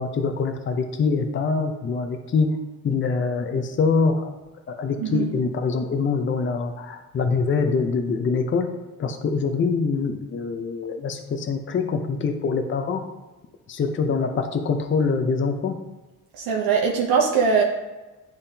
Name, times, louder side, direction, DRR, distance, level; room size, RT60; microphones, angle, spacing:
voice 1, 0.0-2.5 2.8-4.4 4.7-8.7 9.0-13.0 13.7-15.8, left 4 dB, 35° left, 5 dB, 0.6 m, -24 dB
voice 2, 5.0-5.3 16.3-17.6, right 5 dB, 85° right, -1 dB, 0.8 m, -21 dB
10.0 x 3.5 x 2.8 m, 1.2 s
cardioid pair, 110°, 35 cm